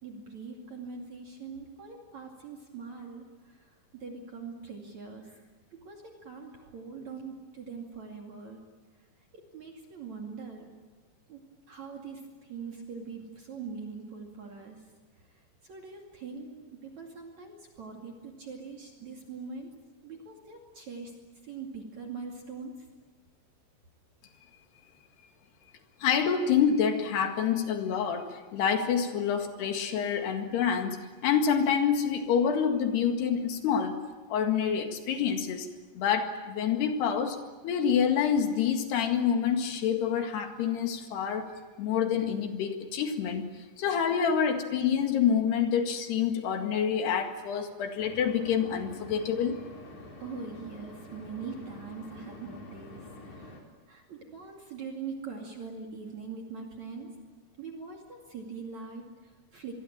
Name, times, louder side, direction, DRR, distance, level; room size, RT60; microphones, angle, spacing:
voice 1, 0.0-3.7 4.0-8.6 9.0-9.1 9.3-10.7 11.3-11.4 11.7-14.9 15.2-19.7 20.0-21.2 21.4-22.9 50.0-53.6 53.9-57.3 57.6-59.8, right 5 dB, 45° right, 1 dB, 3.4 m, -42 dB
voice 2, 26.0-34.0 34.3-35.7 36.0-41.5 41.8-43.5 43.8-49.6, left 7 dB, 75° left, 5 dB, 4.0 m, -27 dB
sound 1, 48.0-53.6, left 2 dB, 45° left, 5.4 m, -47 dB
26.5 x 22.0 x 8.8 m, 1.3 s
omnidirectional pair, 4.9 m